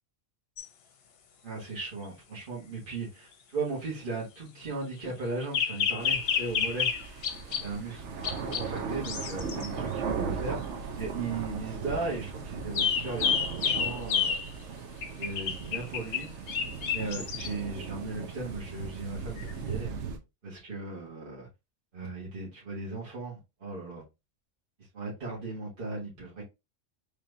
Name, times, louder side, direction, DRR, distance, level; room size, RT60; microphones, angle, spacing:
sound 1, 0.6-0.7 5.5-7.7 8.2-8.7 9.0-9.7 12.7-14.5 15.0-17.5 19.4-19.5, left 7 dB, 60° left, 0.8 m, -29 dB
voice 1, 1.4-6.9 7.6-14.4 15.2-16.3 16.9-20.0 20.4-21.5 21.9-24.0 24.9-26.4, right 3 dB, 45° right, 1.8 m, -37 dB
sound 2, 6.0-20.2, right 6 dB, 70° right, 1.0 m, -38 dB
4.2 x 3.4 x 2.6 m
omnidirectional pair, 1.3 m